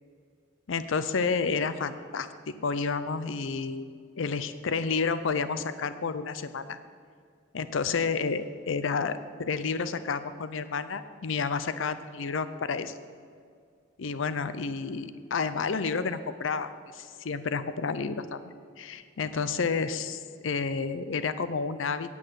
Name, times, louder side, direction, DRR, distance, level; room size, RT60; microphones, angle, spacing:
voice 1, 0.7-2.3 2.6-3.8 4.2-6.8 7.5-13.0 14.0-22.1, left 5 dB, 75° left, 13 dB, 0.5 m, -30 dB
9.0 x 8.4 x 7.5 m, 2.2 s
head